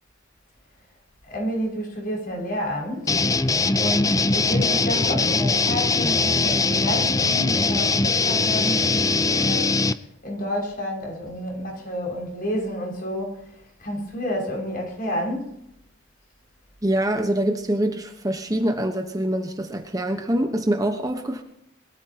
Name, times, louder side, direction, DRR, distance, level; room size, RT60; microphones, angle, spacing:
voice 1, 1.3-9.8 10.2-15.6, equal, 45° left, 6.1 m, -30 dB
sound 1, 3.1-9.9, left 3 dB, 15° left, 0.5 m, -21 dB
voice 2, 16.8-21.4, right 1 dB, 20° right, 1.1 m, -24 dB
22.0 x 13.5 x 2.9 m
head